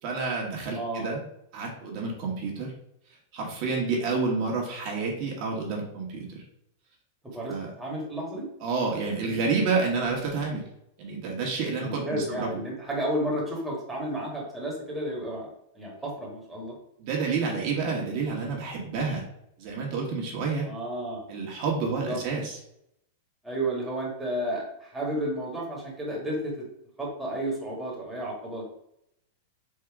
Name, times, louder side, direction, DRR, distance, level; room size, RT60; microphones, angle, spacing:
voice 1, 0.0-1.2 1.5-2.7 3.3-6.4 7.5-7.7 8.6-10.6 11.0-12.6 17.0-19.2 19.6-20.7 21.3-22.6, right 4 dB, 45° right, -2 dB, 1.2 m, -29 dB
voice 2, 7.3-8.5 11.7-15.5 15.7-16.8 20.6-21.3 21.9-22.2 23.4-26.7 27.0-28.6, right 1 dB, 5° right, -4 dB, 1.4 m, -32 dB
3.7 x 2.7 x 4.6 m, 0.76 s
supercardioid pair, 140°, 0 cm